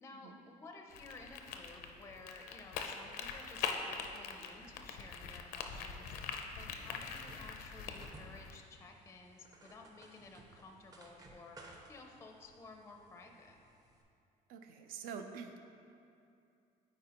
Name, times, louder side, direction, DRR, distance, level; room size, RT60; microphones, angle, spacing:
voice 1, 0.0-6.2 6.6-11.6 11.9-13.6, left 3 dB, 20° left, 3 dB, 0.4 m, -54 dB
sound 1, 0.9-8.6, left 6 dB, 85° left, 0.5 m, -43 dB
sound 2, 6.9-14.0, right 2 dB, 25° right, 0.6 m, -59 dB
voice 2, 14.5-15.6, right 6 dB, 75° right, 6 dB, 0.5 m, -46 dB
9.1 x 4.3 x 2.9 m, 2.6 s
cardioid pair, 145°, 15 cm